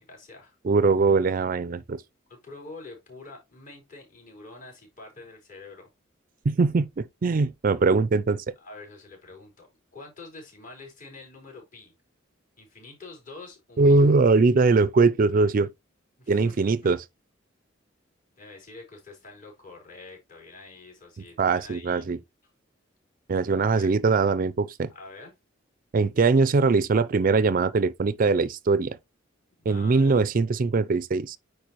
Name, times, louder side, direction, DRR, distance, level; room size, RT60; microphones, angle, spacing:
voice 1, 0.0-0.6 2.3-5.9 8.6-9.7 9.9-11.9 12.6-14.1 16.2-16.7 18.4-22.1 22.4-22.5 23.7-23.9 24.9-25.3 29.6-30.1, left 3 dB, 40° left, 4.4 m, -46 dB
voice 2, 0.6-2.0 6.5-8.4 13.8-15.7 16.3-17.0 21.4-22.2 23.3-24.9 25.9-29.0 29.7-31.4, right 4 dB, 45° right, 0.4 m, -21 dB
9.5 x 4.6 x 3.0 m
head